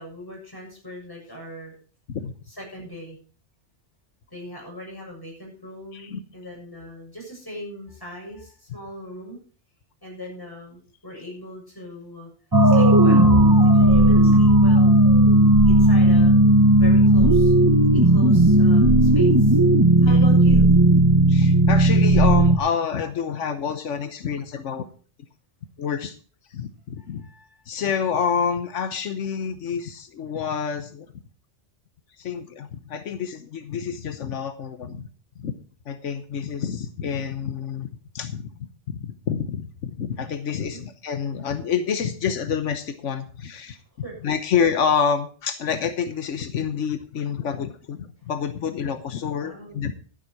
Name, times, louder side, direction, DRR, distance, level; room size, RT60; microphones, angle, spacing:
voice 1, 0.0-1.7 2.5-3.2 4.3-9.4 10.0-12.3 12.7-13.3 13.6-14.9 15.7-16.4 16.8-17.5 17.9-19.6 20.0-20.7 27.2-27.6 40.6-40.8 44.0-44.2 49.4-49.8, equal, 20° left, -2 dB, 7.2 m, -39 dB
sound 1, 12.5-22.6, right 1 dB, 20° right, 0.8 m, -15 dB
voice 2, 21.3-24.8 25.8-26.2 26.5-27.3 27.7-31.1 32.2-35.1 35.4-35.5 35.9-37.9 38.1-38.5 38.9-43.8 44.2-49.9, left 7 dB, 90° left, 9 dB, 1.3 m, -28 dB
12.0 x 11.0 x 4.7 m, 0.40 s
omnidirectional pair, 1.2 m